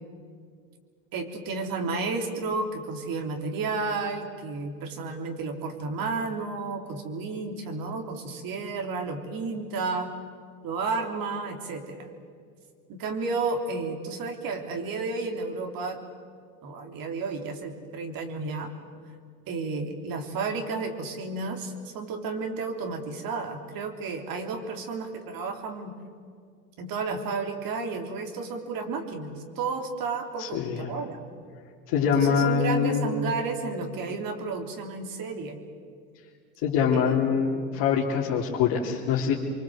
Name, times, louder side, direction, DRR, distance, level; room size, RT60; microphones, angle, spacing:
voice 1, 1.1-10.1 10.6-12.1 12.9-16.0 16.6-18.7 19.5-25.9 26.8-31.2 32.0-35.6 36.9-37.2, right 4 dB, 55° right, 4 dB, 3.4 m, -32 dB
voice 2, 30.4-30.9 31.9-33.2 36.6-39.4, left 7 dB, 60° left, -4 dB, 3.3 m, -24 dB
24.5 x 24.0 x 7.8 m, 2.1 s
hypercardioid pair, 85°, 42 cm